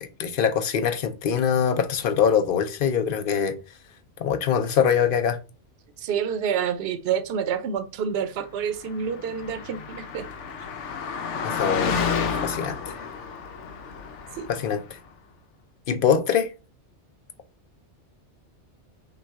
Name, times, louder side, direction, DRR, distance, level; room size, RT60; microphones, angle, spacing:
voice 1, 0.0-3.6 4.2-5.4 11.4-13.0 14.5-14.8 15.9-16.5, left 7 dB, 55° left, 0.8 m, -23 dB
voice 2, 6.0-10.3, right 7 dB, 65° right, 0.8 m, -28 dB
Car passing by, 8.8-14.8, left 6 dB, 85° left, 1.0 m, -30 dB
5.6 x 2.3 x 3.5 m
omnidirectional pair, 1.2 m